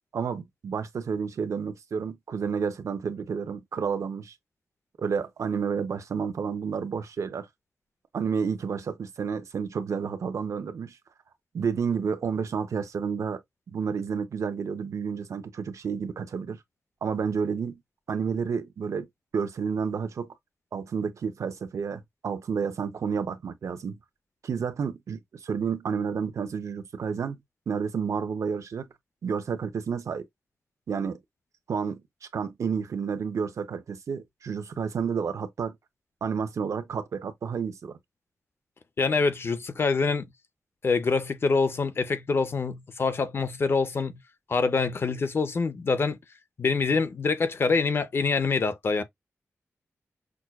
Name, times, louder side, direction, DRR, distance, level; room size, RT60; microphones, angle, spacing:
voice 1, 0.1-4.3 5.0-7.5 8.1-11.0 11.5-13.4 13.7-16.6 17.0-17.8 18.1-19.1 19.3-20.3 20.7-24.0 24.4-27.4 27.7-28.9 29.2-30.2 30.9-31.2 31.7-35.8 36.2-38.0, right 6 dB, 80° right, 0.6 m, -30 dB
voice 2, 39.0-40.3 40.8-44.2 44.5-46.2 46.6-49.0, left 4 dB, 50° left, 0.5 m, -25 dB
6.0 x 2.2 x 2.3 m
wide cardioid pair, 130°, 5 cm